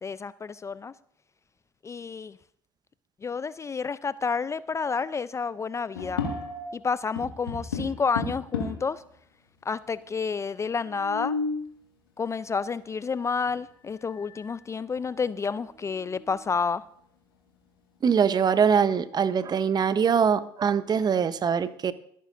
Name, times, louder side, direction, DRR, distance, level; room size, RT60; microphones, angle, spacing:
voice 1, 0.0-0.9 1.8-2.4 3.2-6.2 6.7-9.0 9.7-11.4 12.2-16.8, left 5 dB, 25° left, 18 dB, 0.4 m, -30 dB
sound 1, 6.0-6.8 7.2-9.0 9.7-9.8 10.0-10.1 10.8-11.7 13.4-13.6 14.1-14.5 15.0-15.1 15.6-16.5, left 4 dB, 90° left, 1.7 m, -34 dB
voice 2, 18.0-21.9, right 7 dB, 35° right, 15 dB, 0.8 m, -23 dB
24.0 x 9.3 x 2.6 m, 0.66 s
hypercardioid pair, 60°, 12 cm